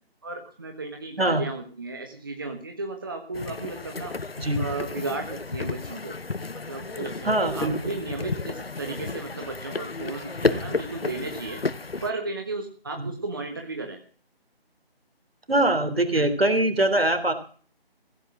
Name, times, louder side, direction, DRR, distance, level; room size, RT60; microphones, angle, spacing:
voice 1, 0.2-4.1 4.6-6.2 6.5-11.6 12.0-14.0, right 3 dB, 20° right, 3 dB, 1.4 m, -34 dB
sound 1, 3.3-12.1, left 3 dB, 65° left, 1.0 m, -32 dB
voice 2, 7.2-7.7 13.0-13.1 15.5-17.3, right 1 dB, 65° right, 9 dB, 3.4 m, -22 dB
16.0 x 8.9 x 7.4 m, 0.42 s
figure-of-eight pair, 160°, 31 cm